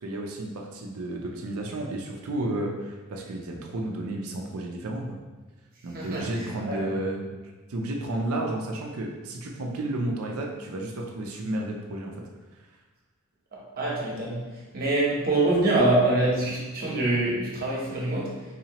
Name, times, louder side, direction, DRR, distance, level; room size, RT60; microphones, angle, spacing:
voice 1, 0.0-5.2 5.8-7.2 7.7-12.1, right 1 dB, 75° right, 0 dB, 0.5 m, -32 dB
voice 2, 5.9-6.8 13.5-14.4 14.7-18.4, right 2 dB, 45° right, -4 dB, 0.9 m, -25 dB
4.0 x 2.8 x 2.9 m, 1.2 s
head